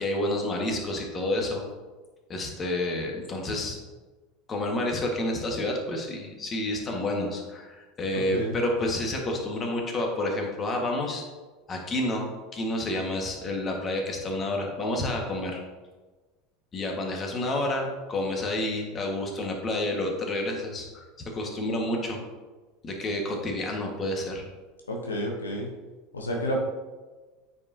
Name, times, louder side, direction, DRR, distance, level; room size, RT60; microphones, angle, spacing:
voice 1, 0.0-1.6 2.3-3.8 4.5-11.2 11.7-12.3 12.5-15.6 16.7-22.2 22.8-24.4, left 1 dB, 30° left, 1 dB, 1.7 m, -29 dB
voice 2, 8.1-8.6 24.9-25.7 26.1-26.6, equal, 90° left, 0 dB, 0.9 m, -30 dB
9.2 x 5.4 x 2.8 m, 1.3 s
hypercardioid pair, 80°, 0 cm